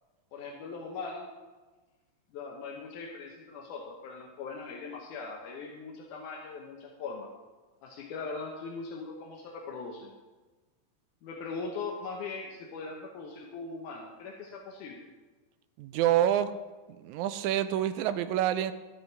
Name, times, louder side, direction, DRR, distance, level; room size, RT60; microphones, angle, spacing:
voice 1, 0.3-1.3 2.3-7.3 7.8-10.1 11.2-15.1, left 4 dB, 80° left, -1 dB, 2.5 m, -40 dB
voice 2, 15.8-16.5 17.0-18.7, right 11 dB, 80° right, 11 dB, 1.9 m, -27 dB
13.0 x 7.6 x 4.6 m, 1.2 s
omnidirectional pair, 3.6 m